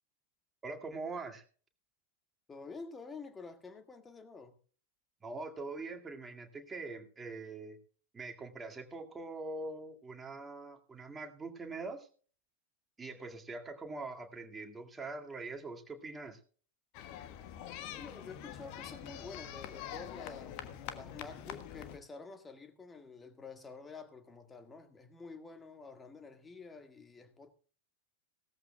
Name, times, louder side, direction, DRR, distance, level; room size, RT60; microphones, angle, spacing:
voice 1, 0.6-1.4 5.2-7.8 8.1-12.1 13.0-16.4, right 3 dB, 15° right, 2.1 m, -43 dB
voice 2, 2.5-4.6 17.9-20.7 20.9-27.5, left 4 dB, 15° left, 1.8 m, -49 dB
sound 1, 16.9-22.0, left 10 dB, 45° left, 1.3 m, -45 dB
18.0 x 14.0 x 2.3 m
figure-of-eight pair, 90°, 0 cm